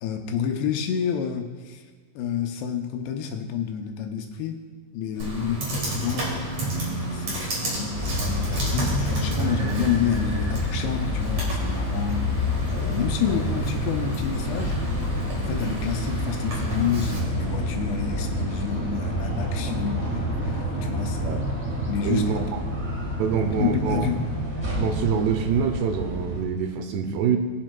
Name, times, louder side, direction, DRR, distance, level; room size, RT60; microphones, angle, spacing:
voice 1, 0.0-1.8 2.2-4.7 4.9-6.3 6.8-14.8 15.4-21.4 21.9-22.2 22.7-22.8 23.3-24.3, left 8 dB, 80° left, 5 dB, 2.6 m, -29 dB
sound 1, 5.1-18.5, equal, 55° left, 3.2 m, -38 dB
Computer keyboard, 5.2-17.2, right 1 dB, 45° right, 3.5 m, -33 dB
sound 2, 7.9-26.4, equal, 65° right, 0.9 m, -28 dB
voice 2, 22.0-22.4 23.2-24.1 24.8-27.4, right 7 dB, 80° right, 6 dB, 2.7 m, -25 dB
20.5 x 7.5 x 2.2 m, 1.5 s
omnidirectional pair, 5.0 m